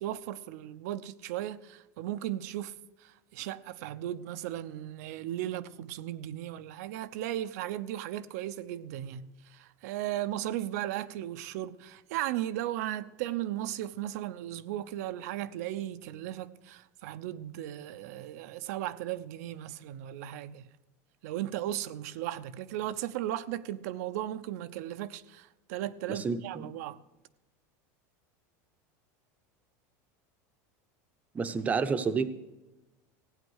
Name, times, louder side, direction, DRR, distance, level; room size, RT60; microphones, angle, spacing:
voice 1, 0.0-2.7 3.0-20.7 21.2-27.0, right 13 dB, 70° right, 0.7 m, -36 dB
voice 2, 26.1-26.7 31.3-32.3, right 5 dB, 15° right, 0.8 m, -30 dB
16.0 x 9.2 x 6.4 m
supercardioid pair, 160°, 9 cm